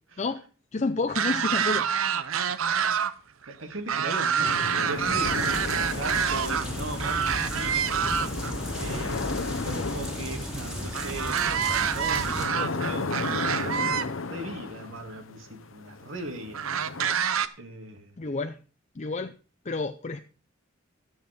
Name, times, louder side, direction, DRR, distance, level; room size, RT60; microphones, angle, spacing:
voice 1, 0.7-1.9 18.2-18.6 18.9-19.3 19.6-20.2, left 3 dB, 35° left, 7 dB, 0.5 m, -29 dB
sound 1, 1.1-3.1 3.4-6.6 7.0-8.5 10.9-14.1 15.0-15.1 16.5-17.5, right 7 dB, 85° right, 0.7 m, -27 dB
voice 2, 3.5-8.4 8.8-9.3 9.6-16.7 17.6-18.2, right 1 dB, 70° right, 5 dB, 2.3 m, -38 dB
sound 2, 4.4-17.2, left 3 dB, 70° left, 0.8 m, -35 dB
sound 3, 4.9-12.5, equal, 5° right, 2.5 m, -35 dB
13.5 x 7.4 x 5.2 m, 0.38 s
head